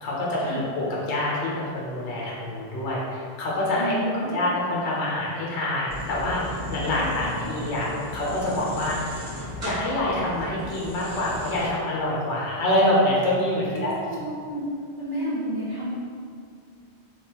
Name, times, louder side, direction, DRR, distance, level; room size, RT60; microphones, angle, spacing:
voice 1, 0.0-3.9 4.3-9.0 9.6-14.1, left 1 dB, 90° left, -5 dB, 1.0 m, -26 dB
voice 2, 3.7-4.5 6.7-7.4 13.6-14.6 15.0-15.9, right 1 dB, 20° right, -11 dB, 1.1 m, -31 dB
sound 1, 5.9-11.7, equal, 40° right, 1.4 m, -36 dB
3.5 x 3.2 x 2.8 m, 2.2 s
omnidirectional pair, 1.1 m